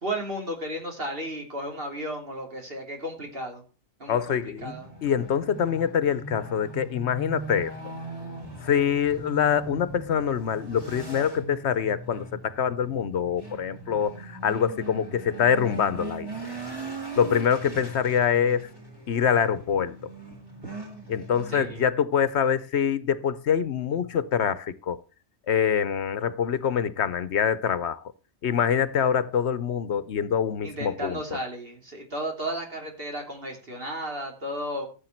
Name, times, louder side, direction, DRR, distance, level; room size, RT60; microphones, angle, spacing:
voice 1, 0.0-3.6 4.0-4.9 21.5-21.8 30.6-34.9, right 1 dB, 55° right, 3.2 m, -34 dB
voice 2, 4.1-4.7 5.0-7.7 8.6-16.3 17.2-18.7 19.1-20.1 21.1-25.0 25.5-28.0 28.4-31.2, left 8 dB, 70° left, 1.0 m, -25 dB
sound 1, 4.6-21.8, right 3 dB, 20° right, 3.5 m, -40 dB
15.0 x 7.3 x 4.4 m
omnidirectional pair, 1.2 m